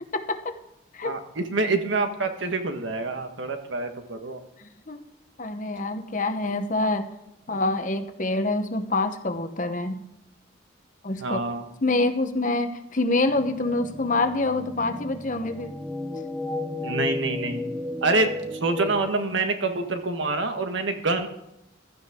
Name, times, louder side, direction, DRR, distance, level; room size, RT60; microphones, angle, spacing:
voice 1, 0.1-0.6 0.9-1.1 4.6-5.0 5.4-7.1 7.5-10.0 11.0-11.4 11.8-15.8, left 2 dB, 40° left, 8 dB, 1.0 m, -26 dB
voice 2, 1.0-4.4 7.5-7.6 11.2-11.6 16.8-17.6 18.0-21.3, right 3 dB, 75° right, 6 dB, 1.5 m, -26 dB
sound 1, 13.3-19.1, left 2 dB, 5° right, 1.1 m, -34 dB
16.0 x 12.0 x 3.7 m, 0.85 s
head